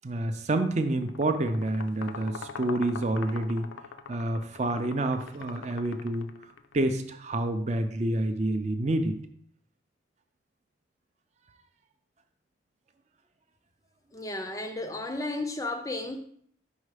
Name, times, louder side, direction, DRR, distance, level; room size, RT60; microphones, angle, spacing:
voice 1, 0.0-3.7 4.1-6.3 6.7-9.2, right 1 dB, 35° right, 0.5 m, -28 dB
sound 1, 1.0-6.7, left 5 dB, 85° left, 0.4 m, -43 dB
voice 2, 14.1-16.2, left 2 dB, 15° left, 0.4 m, -33 dB
5.6 x 4.0 x 4.9 m
head